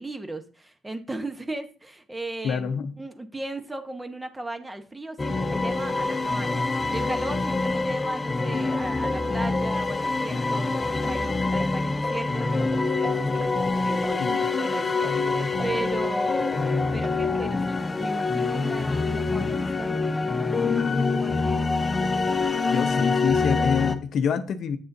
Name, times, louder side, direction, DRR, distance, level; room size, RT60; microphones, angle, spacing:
voice 1, 0.0-16.6 16.9-22.0, right 2 dB, 15° right, 1.0 m, -36 dB
voice 2, 2.4-2.9 14.2-14.4 22.7-24.8, left 7 dB, 65° left, 0.7 m, -26 dB
sound 1, 5.2-24.0, left 3 dB, 25° left, 0.7 m, -25 dB
sound 2, 8.5-17.6, right 3 dB, 65° right, 2.1 m, -45 dB
8.0 x 6.5 x 2.7 m
cardioid pair, 90°, 0 cm